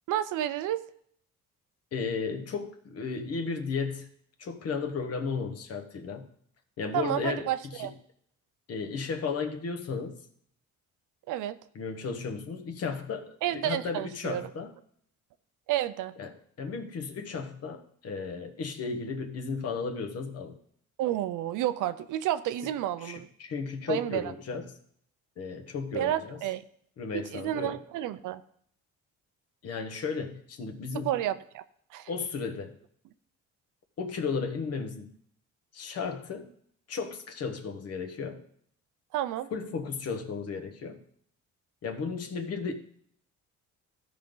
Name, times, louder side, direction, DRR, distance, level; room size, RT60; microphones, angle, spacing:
voice 1, 0.1-0.8 6.9-7.9 11.3-11.6 13.4-14.5 15.7-16.1 21.0-23.3 23.9-24.3 25.9-26.6 27.1-28.4 30.9-31.6 31.9-32.1 39.1-39.5, right 12 dB, 80° right, 13 dB, 0.6 m, -30 dB
voice 2, 1.9-4.1 4.4-6.3 6.8-7.5 7.7-7.9 8.7-10.2 11.7-14.7 16.2-20.6 23.0-24.7 25.4-26.4 27.0-27.8 29.6-31.1 32.1-32.8 34.0-35.1 35.7-36.5 36.9-38.4 39.5-41.0 41.8-42.7, left 5 dB, 55° left, 6 dB, 1.3 m, -34 dB
14.0 x 5.3 x 3.9 m, 0.65 s
cardioid pair, 120°, 30 cm